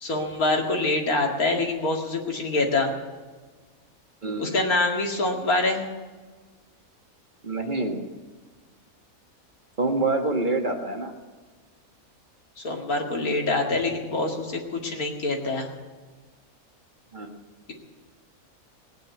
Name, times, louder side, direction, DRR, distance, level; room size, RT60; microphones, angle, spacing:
voice 1, 0.0-2.9 4.4-5.9 12.6-15.7, left 2 dB, 80° left, 0 dB, 2.6 m, -25 dB
voice 2, 7.4-8.1 9.8-11.1 17.1-17.3, right 2 dB, 35° right, 4 dB, 1.7 m, -26 dB
18.0 x 9.2 x 8.5 m, 1.4 s
omnidirectional pair, 1.5 m